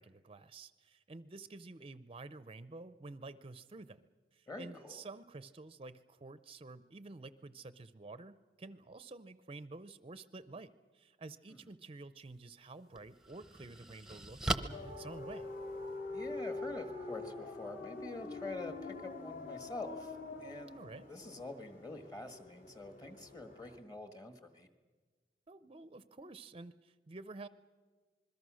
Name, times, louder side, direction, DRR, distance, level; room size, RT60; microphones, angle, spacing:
voice 1, 0.0-4.0 4.3-15.5 20.7-21.1 25.5-27.5, right 3 dB, 35° right, 14 dB, 0.6 m, -50 dB
voice 2, 4.5-5.0 16.1-20.1 20.4-20.8 21.1-24.7, left 2 dB, 25° left, 8 dB, 1.7 m, -46 dB
sound 1, 12.2-12.4 12.9-16.0, right 2 dB, 5° right, 0.9 m, -39 dB
sound 2, 14.7-23.8, left 3 dB, 45° left, 2.4 m, -45 dB
26.5 x 21.5 x 6.4 m, 1.4 s
head